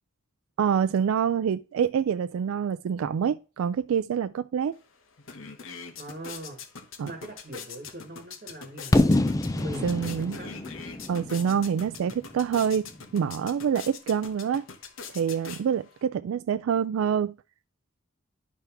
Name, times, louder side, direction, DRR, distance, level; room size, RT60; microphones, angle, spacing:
voice 1, 0.6-4.8 7.0-7.1 9.8-10.4 11.1-12.8 13.1-14.7 15.1-17.3, right 7 dB, 75° right, 0.3 m, -26 dB
sound 1, 4.7-4.8 5.1-16.0, left 5 dB, 70° left, 0.9 m, -43 dB
voice 2, 6.0-6.6 7.0-9.2 9.5-10.6, right 1 dB, 40° right, 1.3 m, -41 dB
Fireworks, 8.9-12.8, left 2 dB, 15° left, 0.3 m, -26 dB
10.5 x 3.5 x 5.8 m
head